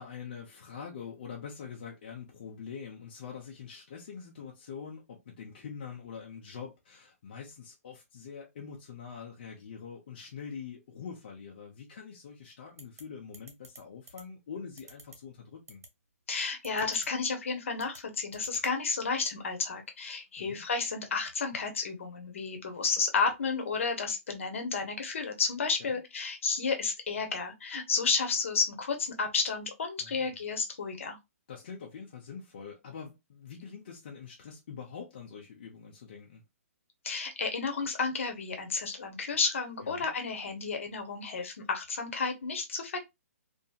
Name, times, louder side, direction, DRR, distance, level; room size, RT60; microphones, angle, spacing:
voice 1, 0.0-15.8 20.4-20.6 25.8-26.0 30.0-30.3 31.5-36.4 39.8-40.1, left 6 dB, 35° left, 0.6 m, -44 dB
sound 1, 12.8-13.0 13.3-13.8 14.1-14.2 14.8-15.2 15.7-15.9 16.6-17.1 17.8-18.0 18.3-18.7, right 3 dB, 80° right, 1.4 m, -49 dB
voice 2, 16.3-31.2 37.0-43.0, left 4 dB, 60° left, 0.9 m, -32 dB
2.8 x 2.6 x 2.3 m
hypercardioid pair, 175°, 8 cm